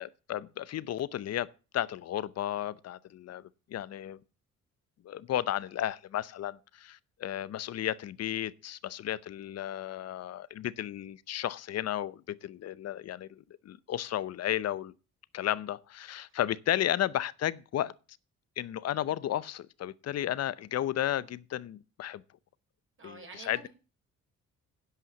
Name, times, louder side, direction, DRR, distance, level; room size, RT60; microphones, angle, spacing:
voice 1, 0.0-4.2 5.0-14.9 15.3-17.9 18.6-22.2 23.0-23.7, left 12 dB, 55° left, 0.7 m, -33 dB
voice 2, 23.0-23.7, right 4 dB, 45° right, 4.4 m, -48 dB
11.0 x 5.7 x 7.2 m
cardioid pair, 90°, 30 cm